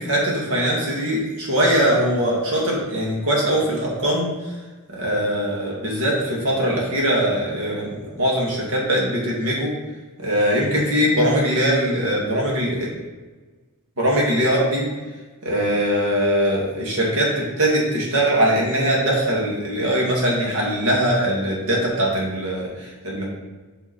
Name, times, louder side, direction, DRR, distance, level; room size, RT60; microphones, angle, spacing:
voice 1, 0.0-4.3 4.9-9.7 10.2-12.9 14.0-14.9 15.4-23.3, equal, 70° right, -3 dB, 2.0 m, -21 dB
5.7 x 5.3 x 4.2 m, 1.3 s
head